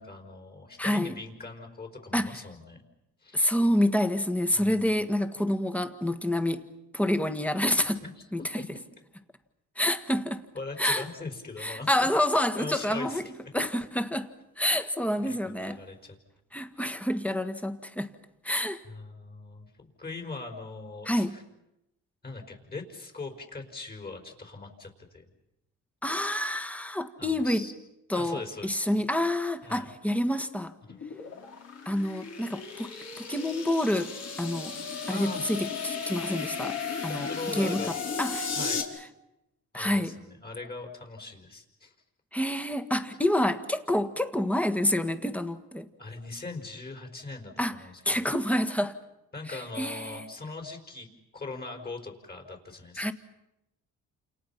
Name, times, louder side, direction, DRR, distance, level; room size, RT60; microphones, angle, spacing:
voice 1, 0.0-2.8 3.2-3.4 4.5-4.7 8.0-8.3 10.5-12.1 12.5-13.2 15.2-16.1 18.8-21.4 22.2-25.3 27.2-27.7 28.1-28.8 29.6-29.9 35.1-35.4 37.0-38.0 38.5-38.8 39.7-41.9 46.0-48.3 49.3-51.1 51.3-53.0, left 3 dB, 30° left, 5.2 m, -40 dB
voice 2, 0.8-1.2 2.1-2.4 3.3-6.7 6.9-8.0 8.3-8.4 9.8-10.4 10.8-11.0 11.6-13.2 13.5-14.3 14.6-15.8 16.5-18.1 18.4-18.8 21.1-21.3 26.0-27.6 28.1-30.7 31.9-32.9 33.2-34.8 35.1-35.6 35.8-36.8 37.0-38.5 39.7-40.1 42.3-45.9 47.6-47.8 48.1-49.0 49.5-50.2 53.0-53.1, left 1 dB, 5° left, 1.8 m, -28 dB
sound 1, 30.8-38.8, left 5 dB, 55° left, 4.1 m, -35 dB
29.5 x 28.5 x 5.8 m
cardioid pair, 90°, 30 cm